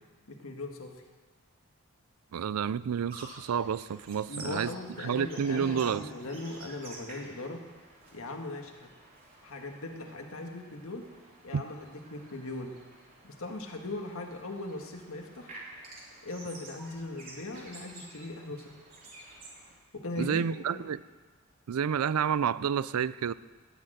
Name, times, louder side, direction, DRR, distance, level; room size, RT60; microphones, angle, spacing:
voice 1, 0.3-0.9 4.3-7.6 8.1-8.9 9.4-11.0 11.4-12.7 13.2-15.5 16.2-18.7 19.9-20.8, left 2 dB, 75° left, 3 dB, 1.6 m, -39 dB
voice 2, 2.3-4.7 5.0-6.1 11.5-11.6 20.2-21.0 21.7-23.3, right 7 dB, 90° right, 18 dB, 0.4 m, -30 dB
sound 1, 3.1-19.7, right 2 dB, 40° right, 3.2 m, -51 dB
18.5 x 6.5 x 7.9 m, 1.4 s
head